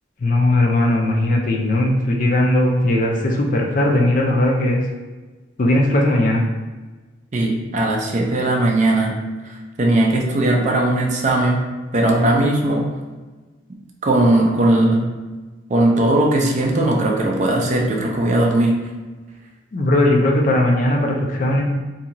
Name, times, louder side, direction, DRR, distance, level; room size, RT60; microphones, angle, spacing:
voice 1, 0.2-4.8 5.6-6.4 19.7-21.6, left 1 dB, 45° left, 0 dB, 0.4 m, -18 dB
voice 2, 7.3-9.1 9.8-11.6 11.9-12.8 14.0-15.1 15.7-18.7, right 1 dB, 40° right, 0 dB, 0.4 m, -18 dB
2.6 x 2.3 x 2.8 m, 1.3 s
head